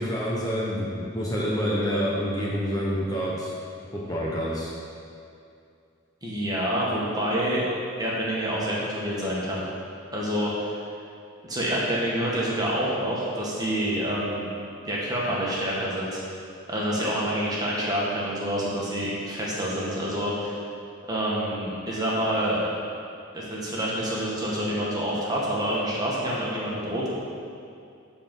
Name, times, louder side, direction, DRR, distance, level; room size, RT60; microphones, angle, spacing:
voice 1, 0.0-3.5 3.9-4.7, equal, 20° left, -5 dB, 0.9 m, -27 dB
voice 2, 6.2-7.6 8.0-9.6 10.1-10.7 11.4-14.5 14.8-16.2 16.7-20.6 21.1-22.6 23.3-27.1, equal, 20° right, -6 dB, 1.7 m, -27 dB
13.0 x 4.4 x 5.4 m, 2.4 s
head